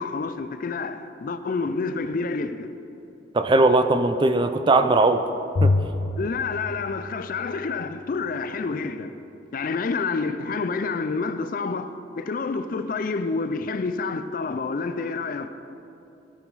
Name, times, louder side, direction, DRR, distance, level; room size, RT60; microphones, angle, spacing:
voice 1, 0.0-2.7 6.2-9.1 9.5-15.5, left 4 dB, 45° left, 0.4 m, -28 dB
voice 2, 3.3-5.2 5.6-5.7, right 2 dB, 25° right, 0.4 m, -19 dB
Bowed string instrument, 5.5-7.9, left 2 dB, 85° left, 0.6 m, -27 dB
15.0 x 5.7 x 4.7 m
head